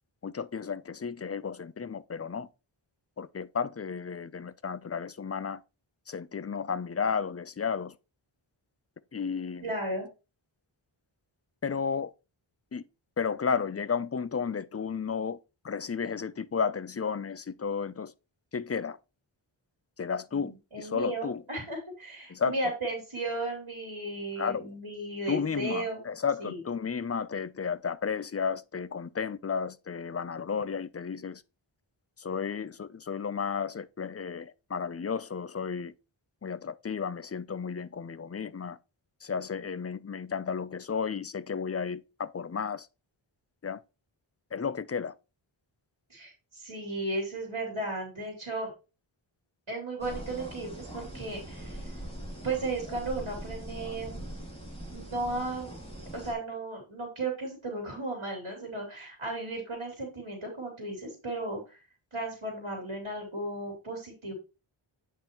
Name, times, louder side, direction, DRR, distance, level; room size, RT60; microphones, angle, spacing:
voice 1, 0.2-2.5 3.2-5.6 6.1-8.0 9.1-9.7 11.6-12.1 12.7-12.8 13.2-15.4 15.6-18.1 18.5-19.0 20.0-21.4 22.3-22.6 24.4-24.7 25.3-31.4 32.2-35.9 36.4-38.8 39.2-42.9 43.6-43.8 44.5-45.1, left 6 dB, 30° left, 0.4 m, -33 dB
voice 2, 9.6-10.1 20.3-26.0 26.4-26.6 46.1-48.7 49.7-51.8 52.4-54.2 54.9-55.8 56.1-61.8 62.1-64.3, right 2 dB, 70° right, 3.1 m, -35 dB
sound 1, 50.0-56.3, right 1 dB, 10° left, 3.2 m, -42 dB
8.6 x 5.5 x 3.0 m
wide cardioid pair, 40°, 50 cm